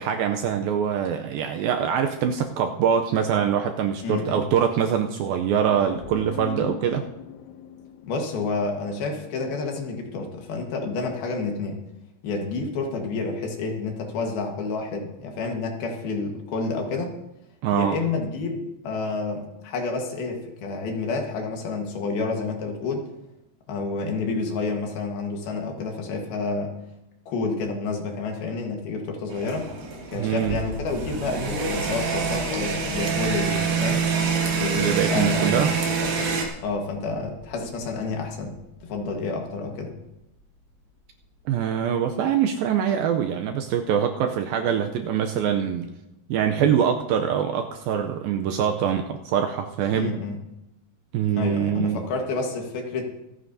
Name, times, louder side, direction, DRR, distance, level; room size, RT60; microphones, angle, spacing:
voice 1, 0.0-7.0 17.6-18.0 30.1-30.6 34.7-35.7 41.5-45.9 46.3-50.1 51.1-52.0, right 8 dB, 80° right, 5 dB, 2.2 m, -24 dB
voice 2, 4.0-4.4 8.0-11.8 12.2-17.2 17.7-23.1 23.7-26.7 27.3-29.6 30.1-34.0 34.5-35.6 36.0-36.3 36.6-38.6 38.8-39.9 49.9-50.4 51.3-53.1, left 3 dB, 70° left, 2 dB, 3.2 m, -29 dB
sound 1, 5.6-9.3, left 8 dB, 90° left, 2.8 m, -40 dB
sound 2, 29.3-36.5, right 5 dB, 60° right, 3.3 m, -26 dB
sound 3, 30.4-41.8 42.0-42.1, left 2 dB, 30° left, 1.5 m, -41 dB
25.5 x 9.4 x 2.7 m, 0.90 s
omnidirectional pair, 4.7 m